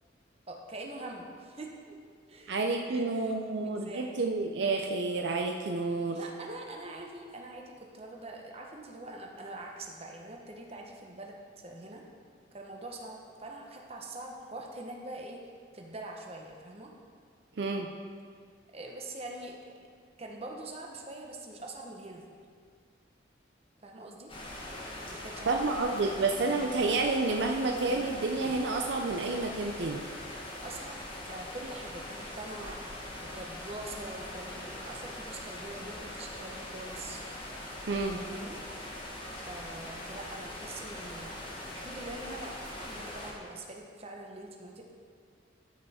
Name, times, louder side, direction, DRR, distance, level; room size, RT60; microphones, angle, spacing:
voice 1, 0.5-2.0 2.3-2.6 2.9-4.2 6.1-12.0 12.5-15.4 15.7-16.9 18.7-19.6 20.2-22.2 23.8-24.4 25.1-25.7 26.1-26.2 30.4-37.2 38.1-38.6 39.4-41.4 41.7-44.9, right 2 dB, 30° right, 1 dB, 0.9 m, -44 dB
voice 2, 2.5-6.2 17.6-17.9 25.5-30.0 37.9-38.2, right 3 dB, 65° right, 3 dB, 0.5 m, -30 dB
sound 1, 24.3-43.3, left 1 dB, 25° left, 1.4 m, -42 dB
13.5 x 5.5 x 4.2 m, 2.1 s
head